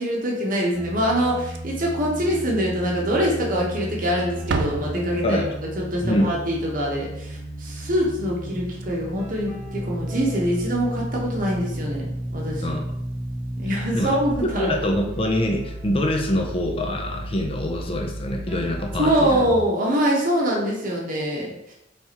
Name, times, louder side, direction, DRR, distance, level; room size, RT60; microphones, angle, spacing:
voice 1, 0.0-5.4 5.8-12.1 12.3-12.8 13.6-14.7 19.0-21.7, equal, 45° right, -3 dB, 1.0 m, -24 dB
sound 1, 0.7-19.6, right 1 dB, 10° right, 1.0 m, -33 dB
Slam, 1.3-1.9 2.2-2.3 2.8-2.9 3.7-4.0 4.3-5.6 8.3-8.4 8.6-8.8 10.4-10.5, right 4 dB, 70° right, 0.4 m, -31 dB
voice 2, 5.2-5.5 6.0-6.3 12.6-12.8 13.9-14.1 14.4-19.4, left 1 dB, 30° left, 2 dB, 0.6 m, -24 dB
4.2 x 3.5 x 2.9 m, 0.78 s
head